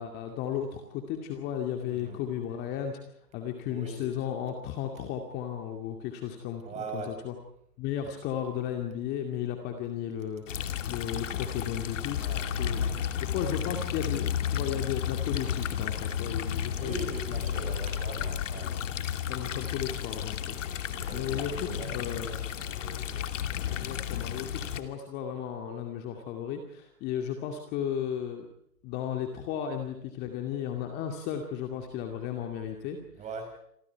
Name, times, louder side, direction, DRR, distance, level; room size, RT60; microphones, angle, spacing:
voice 1, 0.0-7.3 7.8-12.2 12.6-12.8 13.2-17.6 19.3-20.6 21.1-22.4 23.7-28.5 28.8-33.0, left 9 dB, 20° left, 4 dB, 2.4 m, -35 dB
voice 2, 1.9-2.2 3.7-4.0 6.6-7.1 12.2-12.4 16.8-18.7 20.9-23.3 33.2-33.5, right 4 dB, 15° right, 6 dB, 5.6 m, -41 dB
sound 1, 10.5-24.8, left 9 dB, 50° left, 2.7 m, -32 dB
29.0 x 25.0 x 4.7 m, 0.71 s
hypercardioid pair, 145°, 48 cm